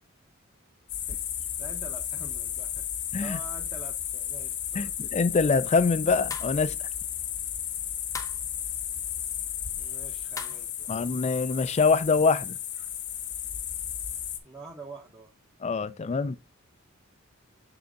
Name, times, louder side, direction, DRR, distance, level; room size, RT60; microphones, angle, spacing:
sound 1, 0.9-14.4, left 10 dB, 55° left, 0.9 m, -34 dB
voice 1, 1.6-2.9 3.2-4.9 9.8-10.9 14.4-15.3, right 2 dB, 20° right, 0.8 m, -46 dB
voice 2, 4.7-6.9 10.9-12.6 15.6-16.4, left 4 dB, 30° left, 0.4 m, -25 dB
sound 2, 6.3-6.6 8.1-8.4 10.4-10.7, left 4 dB, 15° left, 0.9 m, -38 dB
6.9 x 3.8 x 3.5 m
head